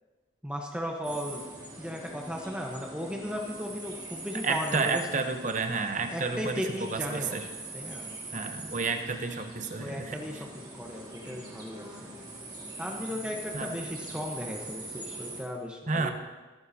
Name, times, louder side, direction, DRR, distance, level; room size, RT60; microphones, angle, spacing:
voice 1, 0.4-1.4 1.8-5.0 6.1-7.4 7.7-8.1 9.8-10.4 10.7-12.1 12.8-16.1, equal, 5° right, 0 dB, 1.0 m, -36 dB
sound 1, 1.0-15.4, right 2 dB, 20° right, 2.0 m, -43 dB
voice 2, 4.4-7.5 8.3-10.4 13.5-13.9 15.9-16.1, right 4 dB, 40° right, 7 dB, 0.8 m, -31 dB
20.0 x 9.4 x 2.8 m, 1.3 s
head